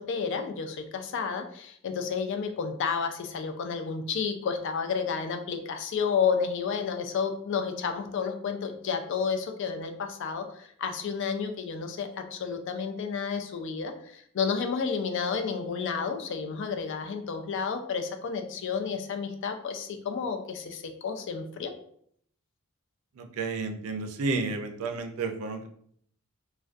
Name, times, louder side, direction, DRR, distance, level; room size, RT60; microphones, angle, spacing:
voice 1, 0.0-21.7, left 6 dB, 55° left, 6 dB, 0.3 m, -31 dB
voice 2, 23.2-25.7, right 3 dB, 75° right, 5 dB, 0.4 m, -31 dB
2.3 x 2.2 x 2.5 m, 0.65 s
head